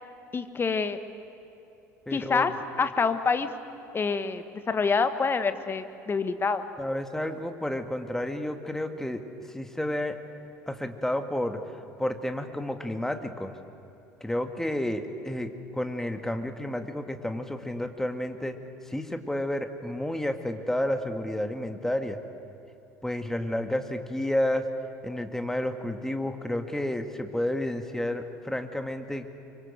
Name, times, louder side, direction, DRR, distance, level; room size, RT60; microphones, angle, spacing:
voice 1, 0.3-1.0 2.1-2.5 2.8-3.5 3.9-6.6, left 5 dB, 25° left, 9 dB, 1.6 m, -26 dB
voice 2, 2.1-2.5 6.8-10.2 10.7-11.6 12.0-13.5 14.2-18.6 18.9-22.2 23.0-24.7 25.0-29.3, left 1 dB, 5° left, 6 dB, 2.0 m, -31 dB
25.0 x 23.5 x 8.0 m, 2.7 s
figure-of-eight pair, 65°, 9 cm